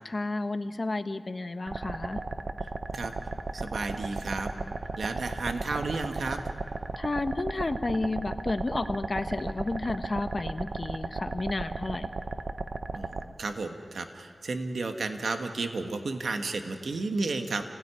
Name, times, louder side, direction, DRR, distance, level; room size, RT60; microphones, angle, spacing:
voice 1, 0.0-2.2 7.0-12.1, left 2 dB, 45° left, 8 dB, 1.3 m, -31 dB
sound 1, 1.7-13.2, right 3 dB, 65° right, 1.0 m, -35 dB
voice 2, 2.6-3.1 3.5-6.4 12.9-17.6, right 3 dB, 85° right, 5 dB, 1.6 m, -33 dB
29.5 x 17.5 x 10.0 m, 2.2 s
cardioid pair, 55°, 0 cm